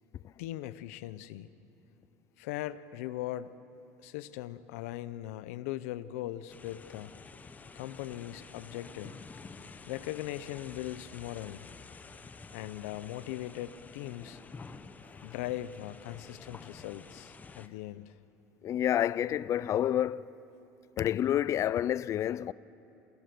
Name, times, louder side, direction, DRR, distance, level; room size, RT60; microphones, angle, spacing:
voice 1, 0.4-1.5 2.4-3.5 4.0-7.2 7.7-9.2 9.9-11.6 12.5-14.4 15.2-18.1, left 14 dB, 85° left, 0.8 m, -39 dB
sound 1, 6.5-17.7, left 4 dB, 20° left, 0.9 m, -50 dB
voice 2, 18.6-20.3 21.0-22.5, left 11 dB, 40° left, 0.4 m, -29 dB
27.5 x 18.5 x 6.9 m
supercardioid pair, 115°, 8 cm